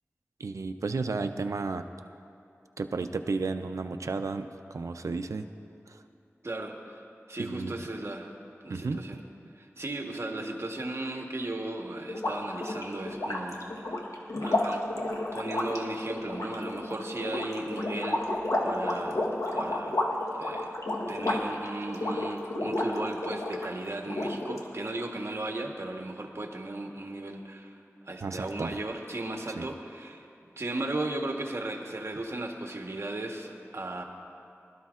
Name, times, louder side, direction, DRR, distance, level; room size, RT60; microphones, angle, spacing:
voice 1, 0.4-1.9 2.8-5.5 5.9-6.0 7.4-7.7 8.7-9.0 28.2-28.7 29.6-29.7, right 4 dB, 85° right, 7 dB, 0.4 m, -33 dB
voice 2, 6.4-7.0 7.3-8.3 8.6-9.2 9.5-14.0 14.4-14.8 15.3-18.3 18.6-19.2 19.5-20.1 20.4-20.7 21.1-34.0, right 2 dB, 60° right, 2 dB, 1.2 m, -36 dB
sound 1, 12.1-23.7 24.1-24.9, left 1 dB, 80° left, 1.1 m, -31 dB
20.5 x 12.5 x 2.4 m, 2.6 s
wide cardioid pair, 50°, 5 cm